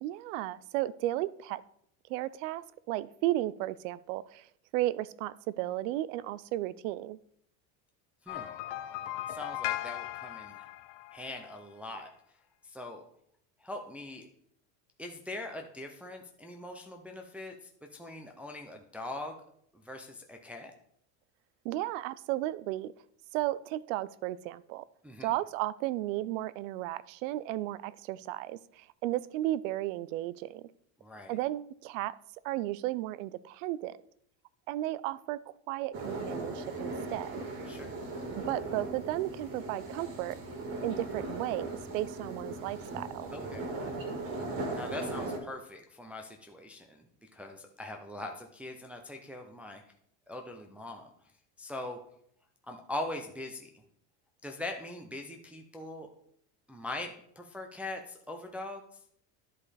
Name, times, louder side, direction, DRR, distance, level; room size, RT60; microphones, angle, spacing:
voice 1, 0.0-1.6 2.1-4.5 4.7-7.2 21.6-22.9 23.3-24.8 25.2-30.7 31.3-32.1 32.4-34.0 34.7-37.4 38.5-40.4 40.8-43.3, right 15 dB, 85° right, 19 dB, 0.6 m, -34 dB
sound 1, 8.3-11.6, left 14 dB, 70° left, 0.7 m, -38 dB
voice 2, 9.3-10.7 11.1-12.1 12.6-13.0 13.6-14.2 15.0-19.4 19.7-20.7 25.0-25.3 31.0-31.4 37.7-37.9 43.3-43.7 44.7-49.8 50.3-51.1 51.6-52.0 52.6-53.8 54.4-56.1 56.7-58.8, left 2 dB, 5° right, 2 dB, 0.4 m, -42 dB
sound 2, 35.9-45.4, right 2 dB, 35° right, 1.6 m, -38 dB
11.0 x 4.9 x 4.2 m, 0.67 s
cardioid pair, 165°, 37 cm